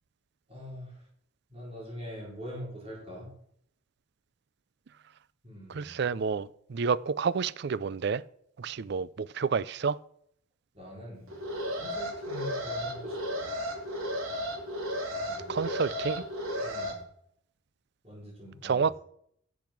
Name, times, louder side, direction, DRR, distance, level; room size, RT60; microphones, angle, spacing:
voice 1, 0.5-1.1 1.5-3.3 5.4-6.0 10.7-11.3 11.7-13.5 15.1-15.6 16.6-17.0 18.0-18.9, left 1 dB, 30° right, 4.6 m, -43 dB
voice 2, 5.7-8.2 8.6-10.0 15.5-16.2 18.6-19.0, right 5 dB, 55° right, 0.4 m, -29 dB
Alarm, 11.3-16.9, equal, 85° right, 2.7 m, -34 dB
10.5 x 7.2 x 6.0 m
head